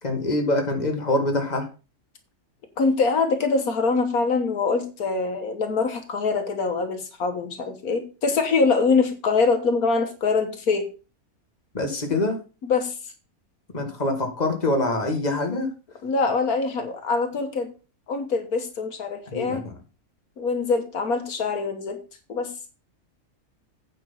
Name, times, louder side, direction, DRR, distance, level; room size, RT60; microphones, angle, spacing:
voice 1, 0.0-1.7 11.7-12.4 13.7-15.7 19.3-19.7, left 2 dB, 30° left, 3 dB, 2.0 m, -25 dB
voice 2, 2.8-10.9 12.6-13.0 16.0-17.7 18.1-19.6 20.4-22.0 22.3-22.5, left 4 dB, 80° left, 7 dB, 1.8 m, -24 dB
9.0 x 6.1 x 5.7 m, 0.33 s
omnidirectional pair, 1.5 m